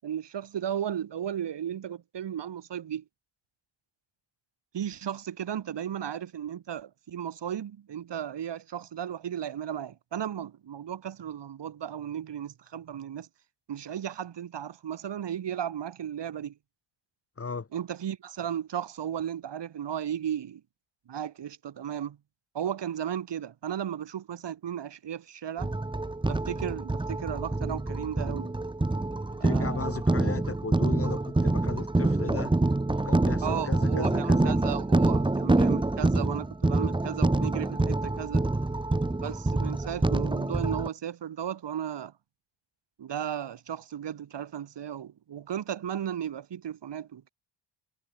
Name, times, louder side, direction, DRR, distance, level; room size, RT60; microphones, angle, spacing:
voice 1, 0.0-3.0 4.7-13.3 13.7-16.5 17.7-20.6 21.1-22.2 22.5-25.7 26.3-28.5 29.4-29.9 33.4-38.5 39.2-42.1 43.0-47.3, right 9 dB, 65° right, 6.7 m, -35 dB
voice 2, 17.4-17.7 29.4-32.5 32.9-34.6, left 4 dB, 30° left, 3.2 m, -36 dB
sound 1, 25.6-40.9, right 2 dB, 10° right, 1.4 m, -26 dB
cardioid pair, 100°, 46 cm